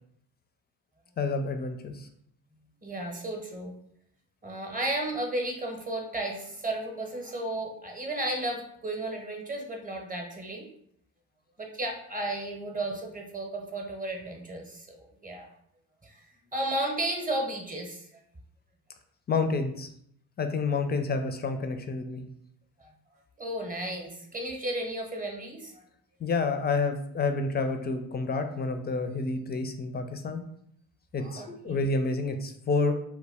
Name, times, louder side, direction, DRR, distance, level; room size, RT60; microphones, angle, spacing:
voice 1, 1.2-2.1 19.3-19.9 20.4-22.2 26.2-30.4 31.1-32.9, left 3 dB, 25° left, 6 dB, 0.4 m, -29 dB
voice 2, 2.8-3.8 4.4-10.7 11.6-15.0 15.2-15.5 16.0-16.2 16.5-18.1 23.4-25.8 31.2-31.9, right 1 dB, 20° right, 2 dB, 0.8 m, -33 dB
2.3 x 2.1 x 3.4 m, 0.71 s
hypercardioid pair, 45°, 41 cm